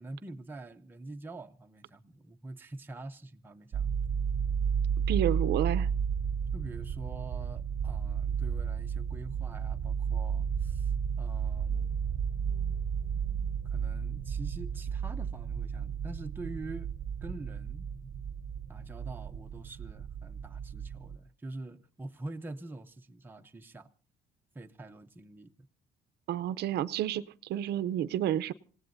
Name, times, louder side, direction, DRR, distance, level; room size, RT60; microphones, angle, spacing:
voice 1, 0.0-3.9 6.5-12.1 13.7-16.9 17.2-17.9 18.7-23.9 24.5-25.7, right 2 dB, 10° right, 0.7 m, -45 dB
sound 1, 3.7-21.2, right 7 dB, 40° right, 0.8 m, -33 dB
voice 2, 5.1-5.9 26.3-28.5, right 11 dB, 70° right, 0.7 m, -30 dB
sound 2, 11.6-19.6, left 3 dB, 75° left, 7.0 m, -63 dB
27.5 x 17.5 x 2.7 m
cardioid pair, 160°, 17 cm